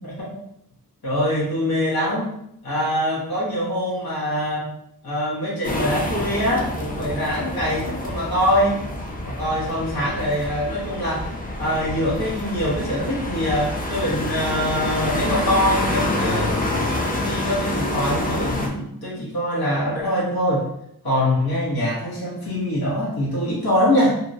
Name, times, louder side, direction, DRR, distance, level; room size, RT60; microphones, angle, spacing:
voice 1, 1.0-2.3 2.6-4.7 5.0-8.8 9.2-11.3 11.6-16.6 17.1-20.7 21.0-24.2, equal, 70° left, -7 dB, 1.2 m, -23 dB
sound 1, 5.6-18.7, left 1 dB, 20° left, 0.6 m, -27 dB
2.9 x 2.8 x 2.6 m, 0.75 s
wide cardioid pair, 65°, 38 cm